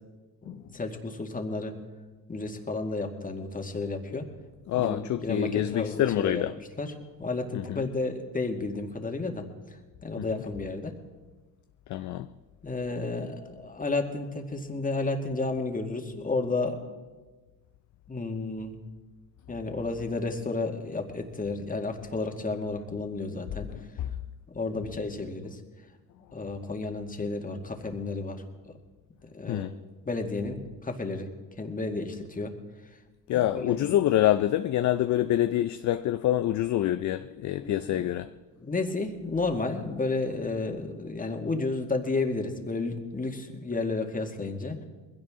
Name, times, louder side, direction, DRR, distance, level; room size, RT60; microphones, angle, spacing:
voice 1, 0.4-1.7 2.3-4.3 4.7-6.9 7.2-9.8 10.0-10.9 12.6-16.8 18.1-18.8 19.5-23.7 24.5-25.6 26.3-28.7 29.2-29.7 30.1-31.3 31.6-32.5 33.3-33.9 37.6-38.0 38.6-44.8, left 3 dB, 20° left, 2.1 m, -32 dB
voice 2, 4.7-6.5 7.5-7.8 10.3-10.4 11.9-12.3 23.7-24.1 29.5-29.7 33.3-38.3, left 13 dB, 50° left, 0.6 m, -26 dB
20.5 x 16.5 x 3.7 m
supercardioid pair, 80°, 38 cm